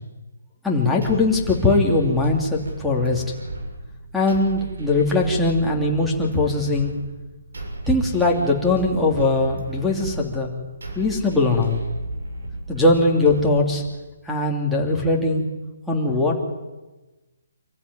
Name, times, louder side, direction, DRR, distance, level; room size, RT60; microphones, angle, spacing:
voice 1, 0.6-3.2 4.1-6.9 7.9-10.5 11.0-11.8 12.7-13.8 14.3-15.5 15.9-16.4, left 2 dB, ahead, -4 dB, 2.8 m, -20 dB
sound 1, 1.0-14.0, right 2 dB, 75° right, 7.0 m, -34 dB
25.5 x 15.0 x 10.0 m, 1.1 s
hypercardioid pair, 165°, 0 cm